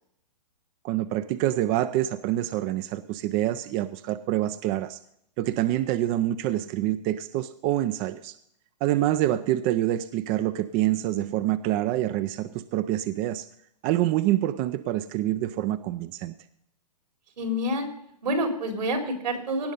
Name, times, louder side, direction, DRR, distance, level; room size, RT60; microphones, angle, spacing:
voice 1, 0.8-5.0 5.4-8.4 8.8-13.5 13.8-16.3, right 14 dB, 25° right, 13 dB, 0.4 m, -26 dB
voice 2, 17.4-17.9 18.2-19.7, equal, 75° right, 3 dB, 3.9 m, -27 dB
17.5 x 6.3 x 5.3 m, 0.72 s
hypercardioid pair, 130°, 21 cm